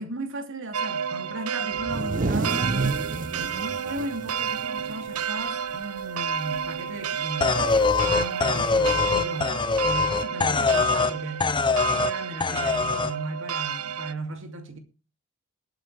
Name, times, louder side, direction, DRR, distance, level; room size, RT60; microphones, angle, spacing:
voice 1, 0.0-2.8 3.3-11.5 11.9-14.8, right 2 dB, 60° right, 2.6 m, -36 dB
sound 1, 0.7-14.1, right 7 dB, 90° right, 0.7 m, -31 dB
sound 2, 1.8-5.5 5.8-6.0 6.3-6.8 7.9-8.0 9.1-9.2, right 3 dB, 40° right, 0.7 m, -30 dB
sound 3, 7.4-11.1 11.4-12.1 12.4-13.1, left 4 dB, 20° left, 0.6 m, -23 dB
21.0 x 9.1 x 3.3 m
head